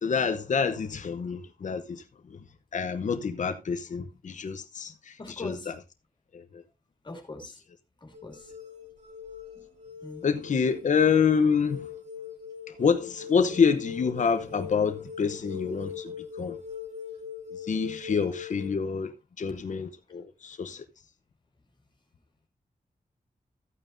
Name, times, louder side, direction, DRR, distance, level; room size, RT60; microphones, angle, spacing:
voice 1, 0.0-2.4 2.7-5.8 6.3-6.6 10.2-11.9 12.7-16.6 17.5-20.8, left 6 dB, 60° left, 0.8 m, -27 dB
voice 2, 5.2-5.7 7.0-7.6 8.0-8.4 10.0-10.2, left 2 dB, 35° left, 2.5 m, -41 dB
sound 1, 8.1-18.7, left 7 dB, 65° right, 4.1 m, -41 dB
13.5 x 9.1 x 2.6 m
wide cardioid pair, 165°, 14 cm